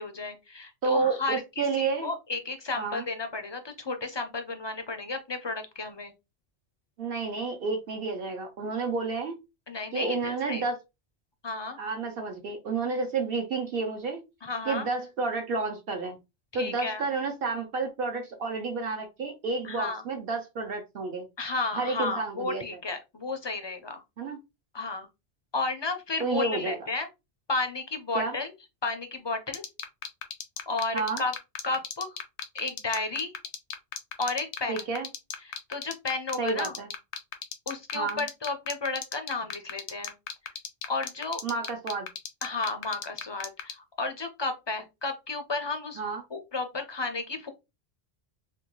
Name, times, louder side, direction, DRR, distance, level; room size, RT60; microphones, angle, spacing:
voice 1, 0.0-6.1 9.7-10.6 11.4-11.8 14.4-14.9 16.5-17.0 19.6-20.0 21.4-24.0 24.7-25.1 25.5-27.1 27.5-28.5 28.8-29.6 30.7-31.3 31.6-32.2 32.5-33.3 34.2-34.9 35.4-36.7 37.7-40.1 40.9-41.4 42.4-46.0 46.3-47.5, left 3 dB, 40° left, 0.4 m, -32 dB
voice 2, 0.8-2.1 2.8-3.0 7.0-9.4 9.9-10.8 11.8-14.2 14.7-16.2 16.5-21.2 21.7-22.6 24.2-24.4 26.2-26.8 28.1-28.3 30.9-31.2 34.7-35.1 36.4-36.9 37.9-38.2 41.4-42.1 46.0-46.2, right 4 dB, 65° right, 0.8 m, -30 dB
sound 1, 29.5-43.7, left 8 dB, 85° left, 0.9 m, -34 dB
3.4 x 2.2 x 2.9 m
omnidirectional pair, 1.1 m